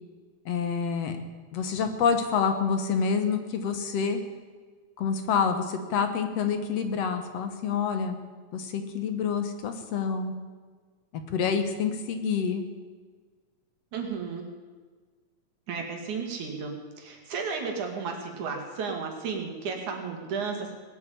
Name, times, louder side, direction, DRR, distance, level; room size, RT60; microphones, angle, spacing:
voice 1, 0.5-1.2 1.5-4.2 5.0-8.2 8.5-10.3 11.1-12.7, left 6 dB, 65° left, 8 dB, 2.2 m, -27 dB
voice 2, 13.9-14.5 15.7-20.7, right 5 dB, 85° right, 2 dB, 3.7 m, -33 dB
19.0 x 8.5 x 8.7 m, 1.5 s
omnidirectional pair, 3.4 m